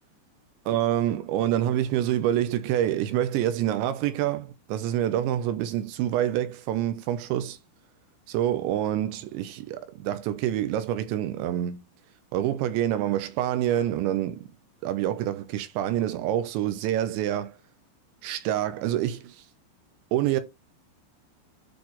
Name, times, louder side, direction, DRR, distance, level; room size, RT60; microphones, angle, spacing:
voice 1, 0.7-7.6 8.3-11.8 12.3-14.5 14.8-17.6 18.2-19.4 20.1-20.4, right 12 dB, 80° right, 2.7 m, -27 dB
8.7 x 4.1 x 3.1 m
omnidirectional pair, 5.8 m